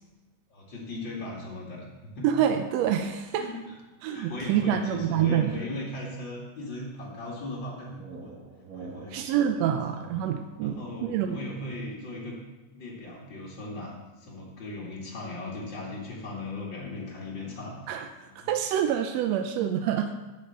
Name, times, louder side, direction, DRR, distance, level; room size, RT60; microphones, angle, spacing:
voice 1, 0.5-2.3 3.0-3.8 4.1-8.4 8.7-9.2 9.6-10.0 10.6-12.4 12.7-17.8 18.2-18.5, left 2 dB, 40° left, -4 dB, 2.3 m, -38 dB
voice 2, 2.2-3.5 4.0-5.5 9.1-11.4 17.9-20.2, right 9 dB, 75° right, 6 dB, 1.6 m, -27 dB
sound 1, 7.4-12.1, right 3 dB, 40° right, 1.3 m, -47 dB
12.5 x 5.6 x 7.8 m, 1.2 s
omnidirectional pair, 3.4 m